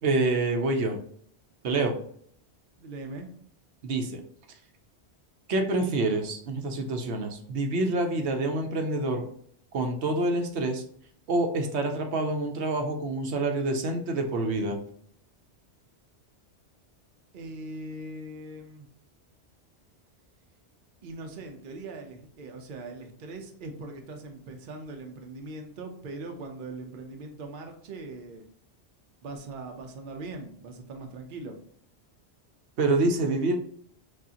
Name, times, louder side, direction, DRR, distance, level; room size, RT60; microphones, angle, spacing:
voice 1, 0.0-1.0 1.6-1.9 3.8-4.2 5.5-9.3 9.7-10.8 11.3-14.8 32.8-33.6, right 2 dB, 80° right, 4 dB, 1.0 m, -27 dB
voice 2, 2.8-3.3 17.3-18.9 21.0-28.5 29.2-31.6, right 2 dB, 55° right, 4 dB, 0.8 m, -40 dB
6.1 x 2.4 x 2.8 m, 0.62 s
omnidirectional pair, 1.1 m